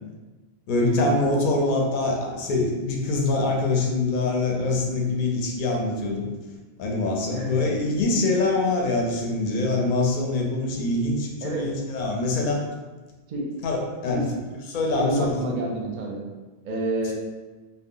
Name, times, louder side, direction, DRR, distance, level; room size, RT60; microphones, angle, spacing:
voice 1, 0.7-6.3 6.8-12.6 13.6-15.3, left 2 dB, 60° left, 0 dB, 0.6 m, -24 dB
voice 2, 14.9-16.2 16.6-17.1, right 1 dB, 55° right, -1 dB, 0.6 m, -28 dB
2.1 x 2.1 x 3.7 m, 1.3 s
omnidirectional pair, 1.1 m